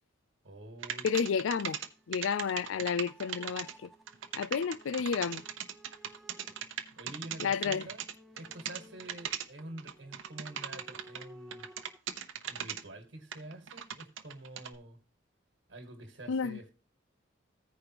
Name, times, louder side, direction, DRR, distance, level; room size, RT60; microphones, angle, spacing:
voice 1, 0.4-1.1 6.9-8.0 8.3-11.7 12.4-15.0 15.7-16.7, right 1 dB, 60° right, 1.7 m, -47 dB
sound 1, 0.8-11.2 11.5-12.8 13.3-14.7, right 9 dB, 85° right, 0.9 m, -38 dB
voice 2, 1.0-1.8 2.1-3.9 4.4-5.4 7.4-7.9 16.3-16.6, left 6 dB, 80° left, 0.4 m, -31 dB
sound 2, 1.9-12.0, equal, ahead, 0.6 m, -58 dB
15.0 x 5.1 x 2.9 m
head